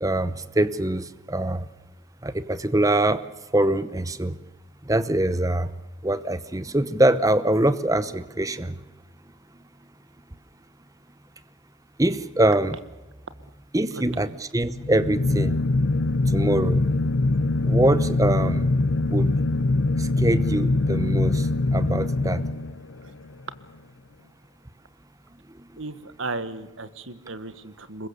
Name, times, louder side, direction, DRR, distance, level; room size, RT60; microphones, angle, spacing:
voice 1, 0.0-1.7 2.2-3.3 3.5-4.4 4.8-5.7 6.0-8.8 12.0-12.8 13.7-15.6 16.3-16.9 17.6-18.7 19.1-19.3 20.0-22.5 25.5-25.7, right 1 dB, 15° right, 14 dB, 0.8 m, -23 dB
voice 2, 13.9-14.4 23.0-23.1 25.8-28.1, right 2 dB, 70° right, 13 dB, 1.5 m, -35 dB
sound 1, 14.7-23.1, left 2 dB, 65° left, 0.7 m, -23 dB
24.0 x 21.0 x 6.9 m, 1.1 s
head